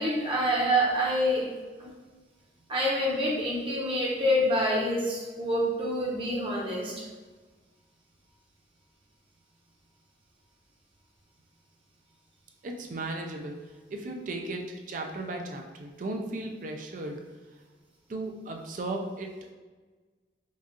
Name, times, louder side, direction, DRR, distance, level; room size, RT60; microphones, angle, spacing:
voice 1, 0.0-1.4 1.8-1.9 2.7-6.9, equal, 30° right, -4 dB, 0.8 m, -27 dB
voice 2, 12.6-13.6 13.9-17.2 18.1-19.5, right 2 dB, 45° right, 2 dB, 0.4 m, -36 dB
4.5 x 2.3 x 2.9 m, 1.3 s
head